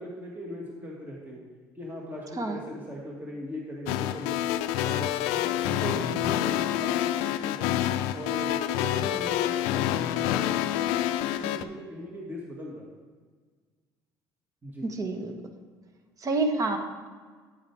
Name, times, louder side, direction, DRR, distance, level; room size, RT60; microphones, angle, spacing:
voice 1, 0.0-1.4 1.8-4.4 4.8-7.8 8.1-10.9 11.2-12.9 14.6-14.9, equal, 20° right, -3 dB, 2.1 m, -39 dB
sound 1, 3.9-11.6, left 12 dB, 75° left, 0.4 m, -27 dB
voice 2, 15.0-15.3 16.2-16.8, right 3 dB, 35° right, 5 dB, 1.4 m, -27 dB
9.6 x 8.8 x 3.6 m, 1.5 s
hypercardioid pair, 70°, 9 cm